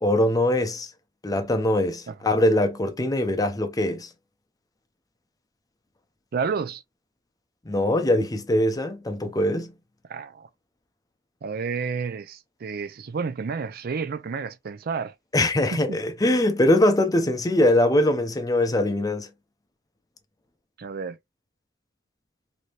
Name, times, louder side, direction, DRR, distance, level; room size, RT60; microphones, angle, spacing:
voice 1, 0.0-0.9 1.2-4.1 7.7-9.7 15.3-19.3, left 1 dB, 20° left, 0.5 m, -22 dB
voice 2, 6.3-6.8 10.1-10.5 11.4-15.1 15.7-16.0 20.8-21.2, right 5 dB, 50° right, 0.4 m, -30 dB
3.2 x 2.7 x 2.4 m
head